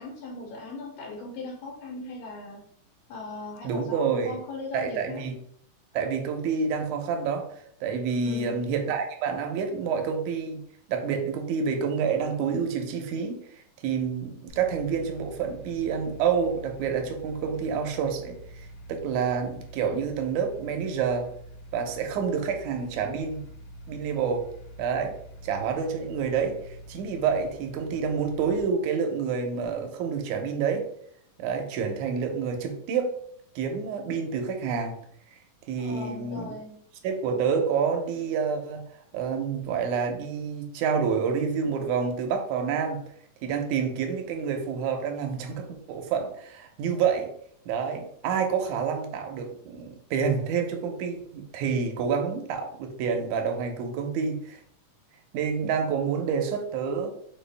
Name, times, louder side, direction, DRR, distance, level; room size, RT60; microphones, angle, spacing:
voice 1, 0.0-2.6 3.1-5.2 8.2-8.6 35.8-36.8, left 3 dB, 90° left, -3 dB, 2.6 m, -39 dB
voice 2, 3.6-4.4 4.7-5.3 5.9-7.5 7.8-10.6 10.9-21.3 21.7-23.4 23.9-24.5 24.8-25.2 25.4-30.9 31.4-33.1 33.6-35.0 35.3-35.4 35.7-36.5 37.0-38.8 39.1-43.0 43.4-47.3 47.7-54.6 55.3-57.1, right 6 dB, 75° right, 4 dB, 1.8 m, -28 dB
sound 1, 14.5-28.6, equal, 70° left, 1.9 m, -46 dB
5.4 x 2.3 x 3.3 m, 0.66 s
omnidirectional pair, 3.9 m